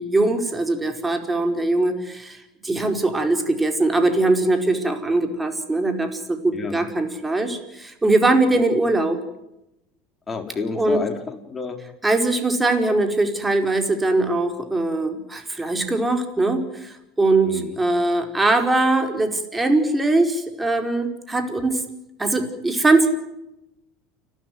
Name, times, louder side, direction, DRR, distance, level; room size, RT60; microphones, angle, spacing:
voice 1, 0.0-9.2 10.8-11.0 12.0-21.8 22.2-23.1, right 2 dB, 15° right, 6 dB, 4.9 m, -21 dB
voice 2, 6.5-6.9 10.3-11.8 17.4-17.8, left 4 dB, 25° left, 4 dB, 4.8 m, -30 dB
29.5 x 13.0 x 9.7 m, 0.88 s
hypercardioid pair, 80°, 0 cm